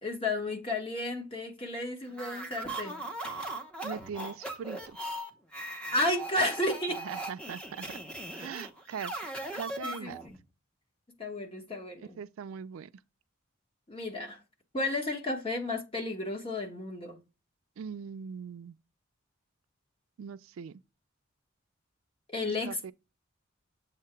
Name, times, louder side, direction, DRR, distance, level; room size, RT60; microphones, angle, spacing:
voice 1, 0.0-3.0 5.9-7.0 9.8-10.1 11.2-12.2 13.9-14.4 14.7-17.2 22.3-22.9, left 2 dB, 25° left, 1.2 m, -32 dB
sound 1, 2.1-10.4, right 1 dB, 5° left, 0.8 m, -39 dB
voice 2, 3.8-5.0 7.0-8.0 8.3-9.3 9.5-10.2 12.0-12.9 17.8-18.8 20.2-20.8 22.4-22.9, right 7 dB, 85° right, 0.4 m, -41 dB
7.4 x 2.8 x 4.4 m
head